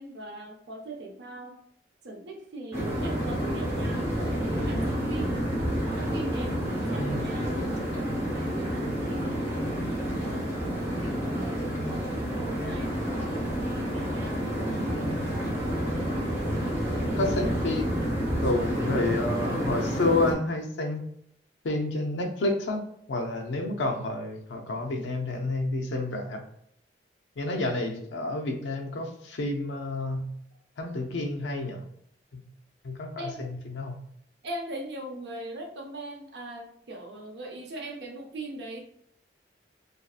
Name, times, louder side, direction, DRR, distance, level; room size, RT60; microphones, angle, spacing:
voice 1, 0.0-1.6 2.0-5.4 6.0-9.7 10.2-15.3 33.2-33.5 34.4-38.8, right 1 dB, 70° right, 2 dB, 0.6 m, -41 dB
sound 1, 2.7-20.3, equal, 15° right, 0.7 m, -29 dB
voice 2, 17.0-18.0 18.4-21.0 21.6-26.4 27.4-30.3 30.8-31.8 32.3-32.4 32.8-34.0, left 2 dB, 90° left, 3 dB, 0.5 m, -30 dB
2.6 x 2.4 x 2.3 m, 0.70 s
head